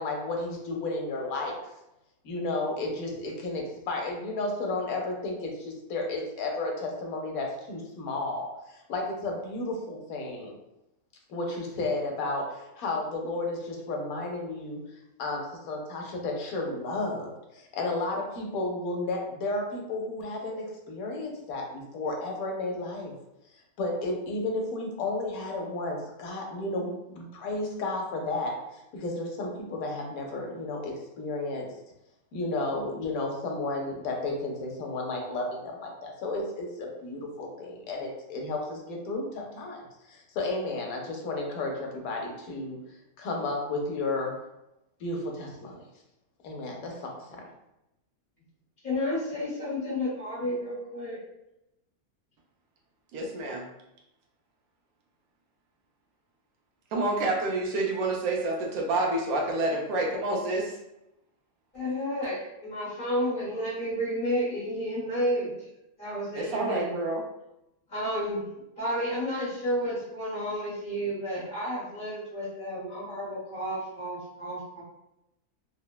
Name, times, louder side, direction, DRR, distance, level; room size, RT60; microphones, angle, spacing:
voice 1, 0.0-1.6 2.2-10.5 11.3-14.8 15.2-23.1 23.8-28.5 28.9-31.7 32.3-42.8 43.2-44.3 45.0-45.8 46.4-47.4, left 2 dB, 80° left, 1 dB, 1.1 m, -33 dB
voice 2, 48.8-51.2 61.7-65.5 66.0-66.9 67.9-68.5 68.8-74.8, equal, 40° left, -7 dB, 1.1 m, -31 dB
voice 3, 53.1-53.6 56.9-60.8 66.3-67.2, right 2 dB, 80° right, 0 dB, 1.0 m, -28 dB
3.1 x 2.0 x 2.2 m, 0.88 s
omnidirectional pair, 1.5 m